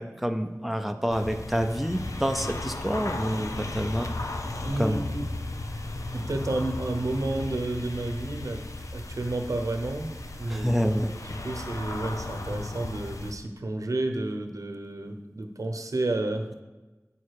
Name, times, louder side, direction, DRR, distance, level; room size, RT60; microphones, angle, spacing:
voice 1, 0.0-4.1 4.8-5.0 10.5-11.1, equal, ahead, 6 dB, 0.7 m, -28 dB
sound 1, 1.1-13.3, left 2 dB, 75° left, 0.7 m, -35 dB
voice 2, 4.6-5.2 6.1-8.6 8.9-10.1 10.4-10.7 11.2-16.6, right 2 dB, 85° right, 6 dB, 0.8 m, -31 dB
8.5 x 6.5 x 4.7 m, 1.1 s
wide cardioid pair, 45°, 6 cm